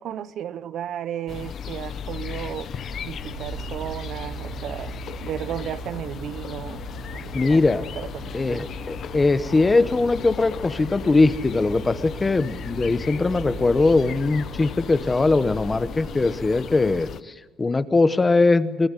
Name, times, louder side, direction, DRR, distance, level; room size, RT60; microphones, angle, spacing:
voice 1, 0.0-2.7 3.0-6.8 7.1-8.6, right 10 dB, 60° right, 0.8 m, -34 dB
sound 1, 1.3-17.2, left 8 dB, 50° left, 0.9 m, -36 dB
sound 2, 2.0-16.5, right 6 dB, 35° right, 3.9 m, -40 dB
voice 2, 7.3-7.8 8.3-18.9, left 3 dB, 20° left, 1.1 m, -21 dB
23.5 x 20.5 x 9.8 m
cardioid pair, 135°, 0 cm